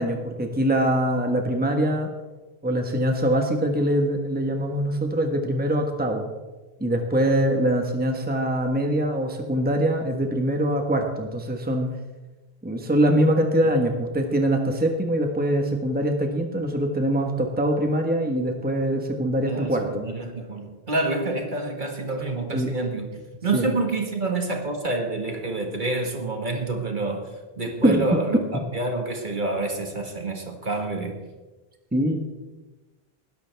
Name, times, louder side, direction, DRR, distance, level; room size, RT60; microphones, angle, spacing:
voice 1, 0.0-2.1 2.6-6.3 6.8-11.9 12.6-20.1 22.5-22.7 23.5-23.7 27.8-28.2 31.9-32.2, right 1 dB, 10° right, 3 dB, 1.3 m, -23 dB
voice 2, 19.4-27.3 27.6-28.4 28.7-31.2, right 2 dB, 50° right, 2 dB, 1.9 m, -28 dB
19.5 x 11.0 x 3.4 m, 1.2 s
omnidirectional pair, 1.0 m